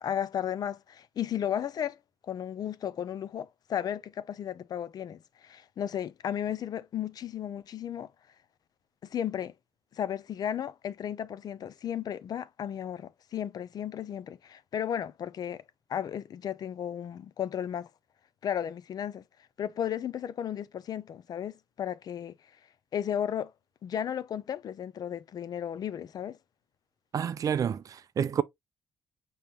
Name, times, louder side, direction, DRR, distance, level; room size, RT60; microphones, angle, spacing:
voice 1, 0.0-2.0 2.2-8.1 9.0-9.5 9.9-15.6 15.9-17.9 18.4-19.2 19.6-22.4 22.9-23.5 23.8-26.4, left 9 dB, 45° left, 0.4 m, -34 dB
voice 2, 27.1-28.4, right 8 dB, 40° right, 0.4 m, -29 dB
5.2 x 2.9 x 3.1 m
cardioid pair, 125°, 9 cm